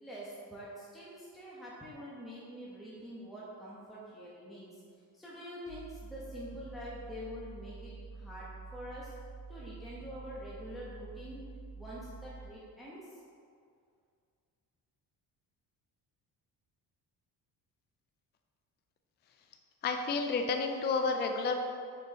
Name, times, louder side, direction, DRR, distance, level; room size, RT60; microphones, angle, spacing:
voice 1, 0.0-4.8 5.1-9.1 9.5-11.4 11.8-13.2, equal, ahead, -8 dB, 1.0 m, -46 dB
sound 1, 5.7-12.5, right 4 dB, 85° right, 1.2 m, -48 dB
voice 2, 19.8-21.6, left 4 dB, 25° left, 4 dB, 0.4 m, -30 dB
6.8 x 4.6 x 5.4 m, 2.2 s
cardioid pair, 160°, 40 cm